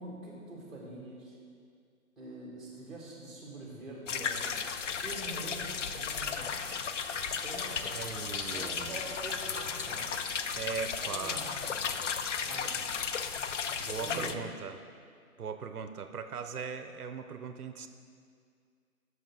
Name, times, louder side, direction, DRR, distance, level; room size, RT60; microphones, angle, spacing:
voice 1, 0.0-1.4 2.2-4.6 5.0-6.7 7.3-10.2 11.0-12.0 12.4-12.9 14.0-14.4, right 2 dB, ahead, -5 dB, 1.9 m, -45 dB
sound 1, 4.1-14.3, left 6 dB, 55° left, 0.6 m, -35 dB
Crow, 4.5-13.3, left 1 dB, 40° left, 2.1 m, -51 dB
voice 2, 7.9-9.0 10.6-11.5 13.8-14.8 15.4-17.9, right 6 dB, 80° right, 9 dB, 0.7 m, -39 dB
12.0 x 6.4 x 3.7 m, 2.2 s
figure-of-eight pair, 140°, 44 cm